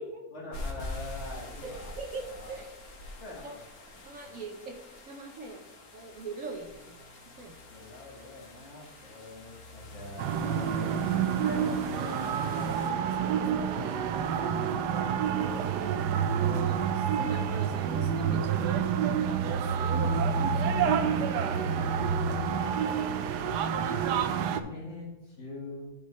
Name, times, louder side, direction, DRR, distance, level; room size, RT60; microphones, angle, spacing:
voice 1, 0.3-2.6 3.2-3.7 4.2-4.5 7.7-15.9 20.1-20.7 21.1-23.0 23.4-25.9, left 2 dB, 45° left, -3 dB, 2.1 m, -44 dB
sound 1, 0.5-12.9, left 2 dB, 60° left, 1.8 m, -45 dB
voice 2, 1.6-2.7 3.4-3.6 4.0-4.8 5.1-5.6 5.9-6.9 7.4-7.6 16.4-18.7, right 3 dB, 60° right, 2 dB, 1.1 m, -41 dB
sound 2, 10.2-24.6, right 7 dB, 85° right, 1.2 m, -28 dB
12.0 x 5.3 x 3.1 m, 1.1 s
omnidirectional pair, 1.8 m